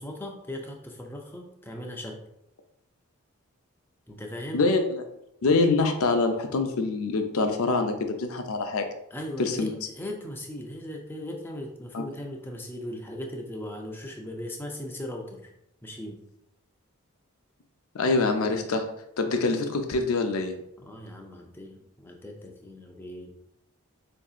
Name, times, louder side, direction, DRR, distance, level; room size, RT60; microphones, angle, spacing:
voice 1, 0.0-2.2 4.1-4.6 9.1-15.5 15.8-16.2 20.8-23.3, left 1 dB, 10° left, 1 dB, 0.4 m, -38 dB
voice 2, 4.5-5.0 5.4-8.8 9.4-9.8 11.9-12.1 17.9-18.9 19.2-20.5, left 3 dB, 70° left, 6 dB, 0.5 m, -25 dB
4.6 x 2.6 x 2.4 m, 0.81 s
head